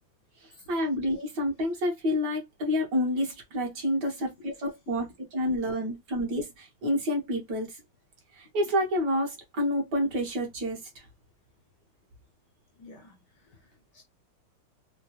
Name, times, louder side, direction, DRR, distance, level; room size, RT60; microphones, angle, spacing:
voice 1, 0.7-5.1 5.3-7.7 8.4-10.8, left 1 dB, 60° right, 1.4 m, -28 dB
voice 2, 4.0-4.5 4.9-5.1 5.4-5.6 12.8-14.0, left 3 dB, 70° left, 1.0 m, -53 dB
3.7 x 2.1 x 2.7 m
omnidirectional pair, 2.3 m